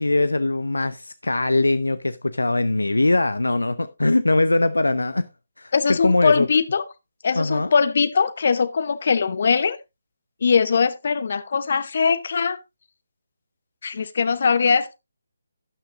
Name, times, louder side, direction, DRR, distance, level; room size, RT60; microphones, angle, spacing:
voice 1, 0.0-5.3 5.6-6.5 7.3-7.7, left 2 dB, 85° left, 0.6 m, -21 dB
voice 2, 5.7-6.8 7.2-9.8 10.4-12.6 13.8-14.9, left 5 dB, 50° left, 0.8 m, -21 dB
12.5 x 8.9 x 2.5 m
figure-of-eight pair, 150°, 0 cm